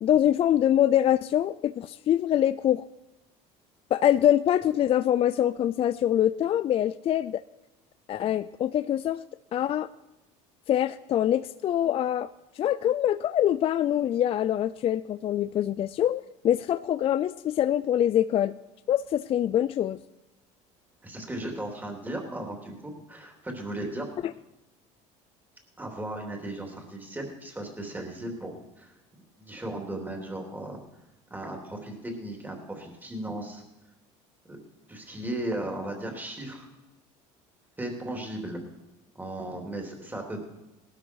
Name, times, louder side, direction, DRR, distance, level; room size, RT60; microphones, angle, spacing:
voice 1, 0.0-2.8 3.9-7.4 8.1-9.2 9.5-9.9 10.7-12.3 12.6-18.5 18.9-20.0, left 11 dB, 40° left, 14 dB, 0.4 m, -24 dB
voice 2, 21.0-24.1 25.8-28.9 29.4-30.8 31.3-33.6 34.5-34.6 34.9-36.7 37.8-38.6 39.1-40.4, right 1 dB, 10° right, 1 dB, 3.2 m, -36 dB
18.5 x 12.5 x 4.7 m, 1.0 s
supercardioid pair, 95°, 15 cm